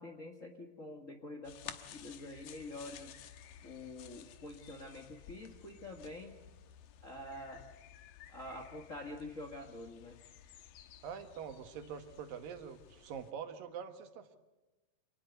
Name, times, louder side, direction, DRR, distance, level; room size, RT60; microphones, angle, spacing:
voice 1, 0.0-3.1 3.6-6.4 7.0-7.6 8.3-10.2, left 2 dB, 35° left, 4 dB, 1.3 m, -47 dB
sound 1, 1.4-13.3, left 10 dB, 85° left, 2.9 m, -54 dB
voice 2, 11.0-14.4, right 7 dB, 85° right, 8 dB, 3.2 m, -45 dB
26.5 x 19.0 x 8.1 m, 1.1 s
omnidirectional pair, 3.9 m